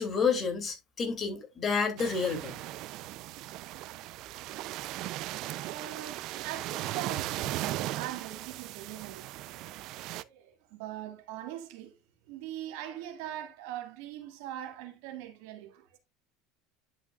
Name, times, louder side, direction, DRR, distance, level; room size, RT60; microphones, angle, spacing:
voice 1, 0.0-2.6, left 5 dB, 30° left, 2.7 m, -29 dB
sound 1, 2.0-10.2, right 15 dB, 60° right, 0.5 m, -37 dB
voice 2, 4.6-7.3 7.7-9.6 10.3-11.9 12.3-16.0, right 12 dB, 75° right, 1.8 m, -42 dB
10.5 x 6.0 x 2.4 m
supercardioid pair, 115°, 0 cm